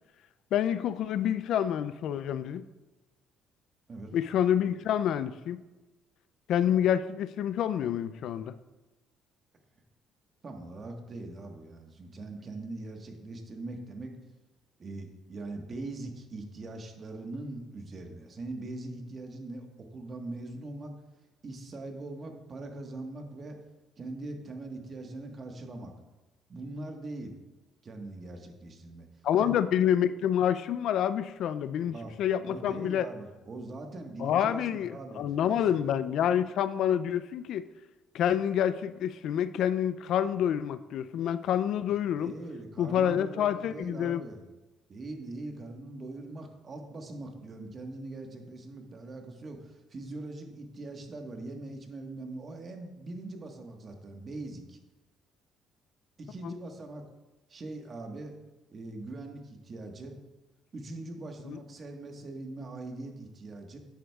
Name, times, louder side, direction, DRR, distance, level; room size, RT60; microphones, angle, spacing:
voice 1, 0.5-2.6 4.1-5.6 6.5-8.5 29.2-33.1 34.2-37.6 38.1-42.3 42.8-44.2 56.4-56.5 61.5-61.6, left 9 dB, 70° left, 14 dB, 0.3 m, -28 dB
voice 2, 10.4-14.2 14.8-20.9 21.4-23.6 24.0-25.9 26.5-27.4 27.8-29.1 29.4-29.6 31.9-35.2 35.5-35.9 42.2-44.4 44.9-54.8 56.2-57.0 57.5-58.3 58.7-60.2 60.7-63.8, right 2 dB, 40° right, 3 dB, 1.4 m, -41 dB
10.0 x 7.7 x 2.3 m, 1.1 s
supercardioid pair, 75°, 0 cm